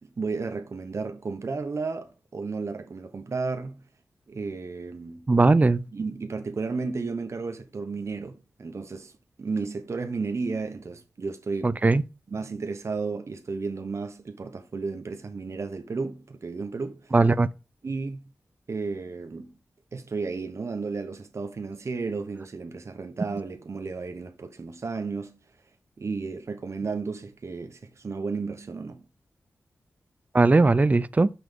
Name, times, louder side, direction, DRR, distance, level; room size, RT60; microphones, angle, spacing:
voice 1, 0.0-3.8 4.3-5.3 5.9-9.1 9.4-11.8 12.3-17.1 17.8-18.3 18.7-19.5 19.9-25.4 26.0-29.0, right 4 dB, 55° right, 1.1 m, -33 dB
voice 2, 5.3-5.8 11.6-12.0 17.1-17.5 30.3-31.3, right 3 dB, 25° right, 0.4 m, -19 dB
6.1 x 5.7 x 5.4 m
cardioid pair, 70°, 6 cm